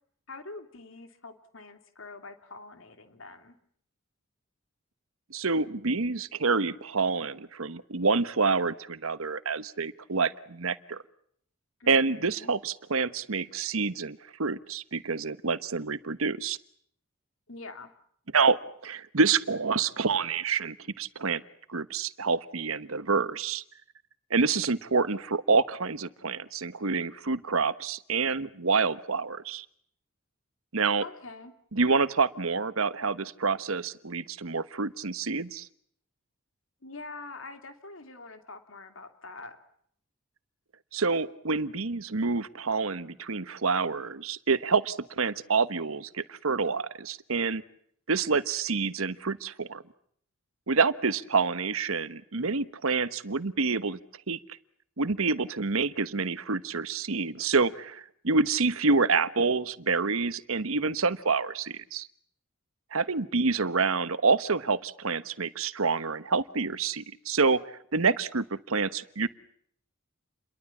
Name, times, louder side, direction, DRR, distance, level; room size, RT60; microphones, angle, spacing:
voice 1, 0.3-3.5 11.8-12.5 17.5-17.9 31.0-31.5 36.8-39.6, left 3 dB, 65° left, 8 dB, 3.0 m, -45 dB
voice 2, 5.3-11.0 11.9-16.6 18.3-21.4 21.7-23.6 24.3-29.6 30.7-31.0 31.7-35.7 40.9-47.6 48.1-49.8 50.7-54.0 54.3-54.4 55.0-62.1 62.9-67.6 67.9-69.3, right 4 dB, 75° right, 14 dB, 1.2 m, -27 dB
29.5 x 23.0 x 7.3 m, 0.66 s
head